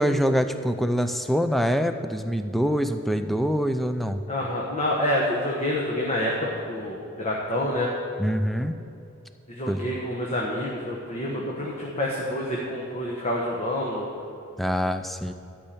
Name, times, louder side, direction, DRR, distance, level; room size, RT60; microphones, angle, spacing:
voice 1, 0.0-4.2 8.2-8.8 9.7-9.9 14.6-15.3, equal, ahead, 8 dB, 0.4 m, -25 dB
voice 2, 4.3-7.9 9.5-14.1, left 1 dB, 30° left, -3 dB, 1.1 m, -27 dB
12.0 x 5.6 x 8.6 m, 2.7 s
head